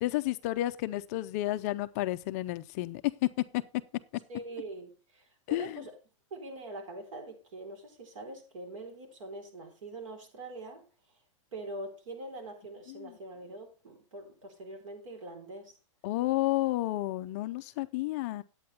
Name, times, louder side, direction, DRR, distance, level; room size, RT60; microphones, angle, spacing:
voice 1, 0.0-3.6 5.5-5.8 13.0-13.1 16.0-18.4, left 17 dB, 30° left, 0.4 m, -31 dB
voice 2, 4.3-5.9 6.3-10.8 11.5-15.7, right 2 dB, 80° right, 4.0 m, -43 dB
10.0 x 8.6 x 4.2 m
supercardioid pair, 165°, 17 cm